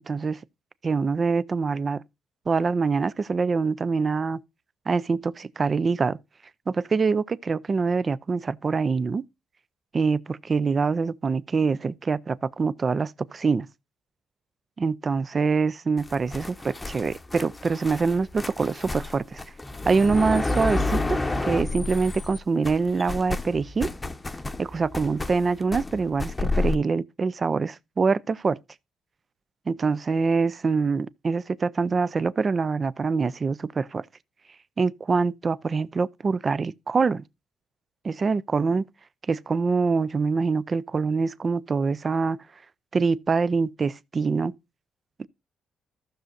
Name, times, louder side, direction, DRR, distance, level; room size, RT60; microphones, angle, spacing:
voice 1, 0.1-0.4 0.8-2.0 2.5-4.4 4.9-6.2 6.7-9.2 9.9-13.7 14.8-19.4 19.9-21.2 21.4-23.9 24.6-28.6 29.7-34.0 34.8-37.2 38.0-38.8 39.3-42.4 42.9-44.5 45.2-45.3, right 4 dB, 35° right, 0.5 m, -25 dB
sound 1, 16.0-22.4 22.6-26.8, left 2 dB, 20° left, 0.8 m, -30 dB
15.0 x 6.4 x 2.5 m
cardioid pair, 90°, 0 cm